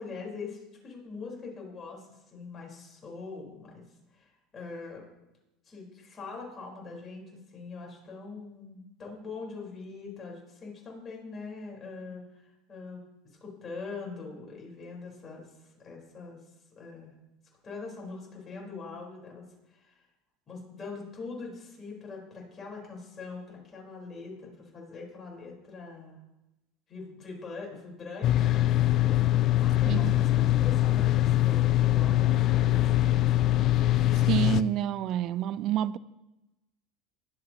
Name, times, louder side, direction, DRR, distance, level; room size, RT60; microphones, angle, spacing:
voice 1, 0.0-3.8 4.1-5.0 5.6-12.4 12.7-13.0 13.4-16.4 16.8-17.1 17.6-20.1 20.5-26.2 26.9-29.0 29.6-33.1, left 4 dB, 25° left, 4.4 m, -43 dB
sound 1, 28.2-34.6, left 14 dB, 45° left, 0.4 m, -23 dB
voice 2, 34.1-36.0, right 11 dB, 50° right, 0.4 m, -28 dB
20.5 x 7.6 x 3.0 m
supercardioid pair, 115°, 0 cm